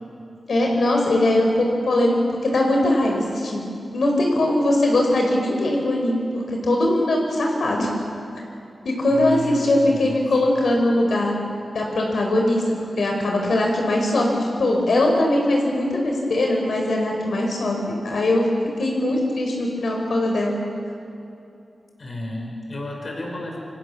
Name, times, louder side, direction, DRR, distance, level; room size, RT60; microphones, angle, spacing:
voice 1, 0.5-2.2 2.4-7.9 8.8-11.3 11.7-12.6 13.0-18.4 18.8-20.6, left 1 dB, 70° left, 1 dB, 4.6 m, -21 dB
voice 2, 9.1-10.3 22.0-23.7, left 1 dB, 40° left, 1 dB, 5.4 m, -33 dB
29.0 x 26.0 x 7.2 m, 2.7 s
wide cardioid pair, 150°, 0 cm